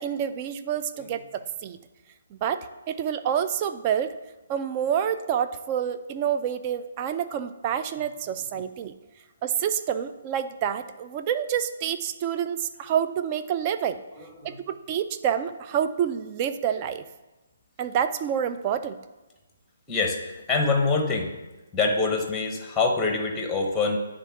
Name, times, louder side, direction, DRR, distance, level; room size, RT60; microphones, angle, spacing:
voice 1, 0.0-1.8 2.3-4.1 4.5-8.9 9.4-14.0 14.4-17.0 17.8-19.0, right 9 dB, 30° right, 10 dB, 0.4 m, -28 dB
voice 2, 19.9-21.3 21.7-24.0, left 3 dB, 10° left, 3 dB, 0.8 m, -25 dB
9.0 x 3.7 x 3.5 m, 1.1 s
hypercardioid pair, 155°, 0 cm